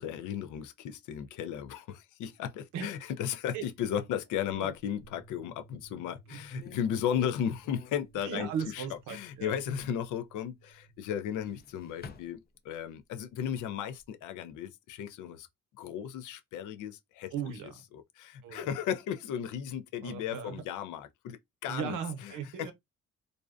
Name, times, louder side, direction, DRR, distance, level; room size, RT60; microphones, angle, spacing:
voice 1, 0.0-8.5 8.7-8.8 9.1-12.4 12.7-15.5 15.8-17.3 18.2-22.0 22.6-22.7, left 9 dB, 85° left, 0.5 m, -35 dB
sound 1, 4.7-5.3 5.8-5.9 6.3-9.0 9.2-10.1 11.2-13.0 13.4-14.0, left 5 dB, 35° left, 0.4 m, -53 dB
sound 2, 5.0-11.3, right 3 dB, 55° left, 0.9 m, -60 dB
voice 2, 6.3-6.6 8.2-9.5 17.3-17.8 18.4-18.7 20.0-20.6 21.7-22.7, right 7 dB, 80° right, 0.7 m, -37 dB
2.5 x 2.1 x 2.3 m
cardioid pair, 90°, 30 cm